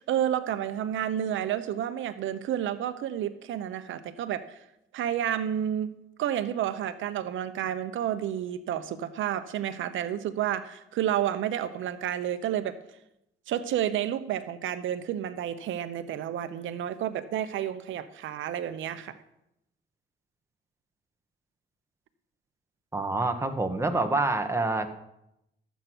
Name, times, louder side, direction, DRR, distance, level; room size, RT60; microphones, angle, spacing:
voice 1, 0.0-4.6 4.9-12.8 13.5-19.2, right 10 dB, 80° right, 12 dB, 0.9 m, -30 dB
voice 2, 22.9-24.9, right 2 dB, 15° right, 6 dB, 1.4 m, -27 dB
13.0 x 8.2 x 6.1 m, 0.83 s
cardioid pair, 90°, 20 cm